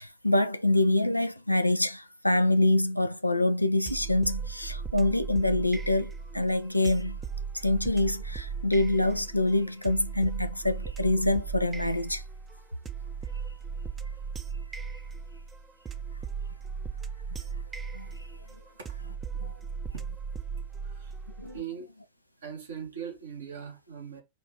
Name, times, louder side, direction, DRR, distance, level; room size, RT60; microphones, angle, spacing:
voice 1, 0.0-7.2 7.6-12.2 17.9-18.1 19.4-19.5 21.4-21.6, left 2 dB, 85° left, 0.3 m, -26 dB
sound 1, 3.9-21.6, right 6 dB, 20° right, 0.6 m, -37 dB
voice 2, 20.8-21.1 21.5-21.9 22.4-24.2, right 7 dB, 65° right, 1.3 m, -40 dB
4.6 x 2.4 x 3.7 m
figure-of-eight pair, 90°, 0 cm